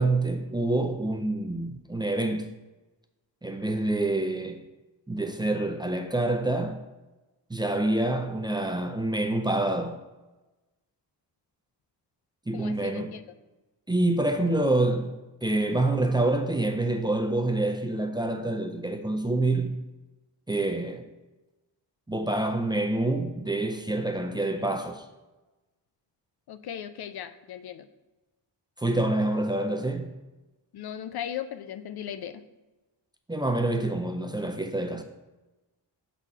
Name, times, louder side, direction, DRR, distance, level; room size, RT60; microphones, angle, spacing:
voice 1, 0.0-2.5 3.4-4.6 5.1-6.8 7.5-10.0 12.5-13.2 13.9-15.1 15.4-19.8 20.5-21.1 22.1-25.0 28.8-30.1 33.3-35.0, right 2 dB, 10° right, 0.5 m, -27 dB
voice 2, 12.5-13.2 26.5-27.9 30.7-32.4, left 9 dB, 60° left, 0.6 m, -37 dB
6.0 x 4.2 x 5.5 m
cardioid pair, 100°, 44 cm